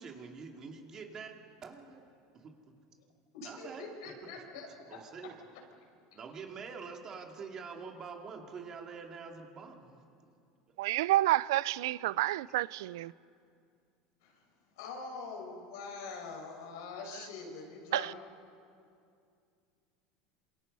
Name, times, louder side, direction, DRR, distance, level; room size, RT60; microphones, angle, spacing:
voice 1, 0.0-1.3 1.6-2.0 2.4-2.5 3.4-3.9 4.9-5.3 6.1-10.3, right 5 dB, 30° right, 2.6 m, -45 dB
voice 2, 3.3-5.0 14.2-14.3 14.8-18.1, left 4 dB, 85° left, 6.4 m, -44 dB
voice 3, 10.8-13.1 17.1-17.2 17.9-18.1, right 15 dB, 90° right, 0.5 m, -29 dB
28.0 x 27.0 x 5.5 m
supercardioid pair, 150°, 2 cm